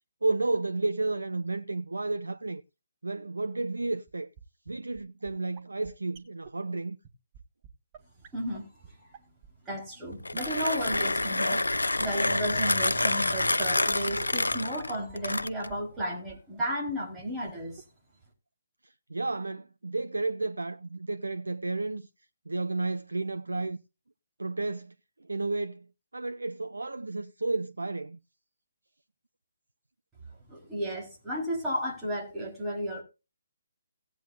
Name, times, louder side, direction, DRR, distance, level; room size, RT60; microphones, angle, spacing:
voice 1, 0.2-2.6 3.0-4.3 4.7-7.0 18.8-22.1 22.5-23.8 24.4-24.9 25.2-28.2, right 3 dB, 70° right, 0.6 m, -32 dB
sound 1, 4.1-4.2 4.4-4.5 4.7-4.8 5.0-5.3 5.6-5.7 5.8-5.9 6.1-6.2 6.5-6.6 6.7-6.8 7.0-7.1 7.3-7.4 7.6-7.7 7.9-8.0 8.2-8.3 8.5-8.6 8.8-8.9 9.1-9.5 9.7-9.8 10.0-10.1 10.3-10.4 10.6-10.7 10.9-11.0 11.2-11.3 11.5-11.6 11.8-11.9 13.3-13.4 13.6-13.7 13.9-14.0 14.2-14.3 14.5-14.6 14.8-14.9 15.1-15.2 15.4-15.7 16.0-16.1 16.3-16.4 16.6-16.7 16.9-17.0 17.2-17.3 17.5-17.6 17.8-17.9, right 8 dB, 25° right, 1.6 m, -49 dB
voice 2, 8.3-8.7 9.6-17.8 30.5-33.0, equal, 10° right, 4.3 m, -33 dB
Mechanisms, 10.1-15.8, left 2 dB, 75° left, 0.7 m, -28 dB
17.5 x 9.1 x 2.6 m
figure-of-eight pair, 140°, 0 cm